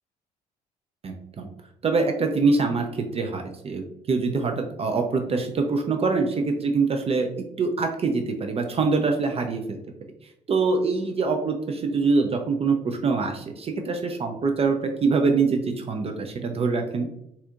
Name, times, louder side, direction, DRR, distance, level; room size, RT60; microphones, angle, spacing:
voice 1, 1.0-1.5 1.8-2.9 3.1-7.3 7.6-9.8 10.5-17.1, right 4 dB, 30° right, 4 dB, 0.5 m, -24 dB
4.1 x 2.7 x 2.4 m, 0.81 s
figure-of-eight pair, 45°, 20 cm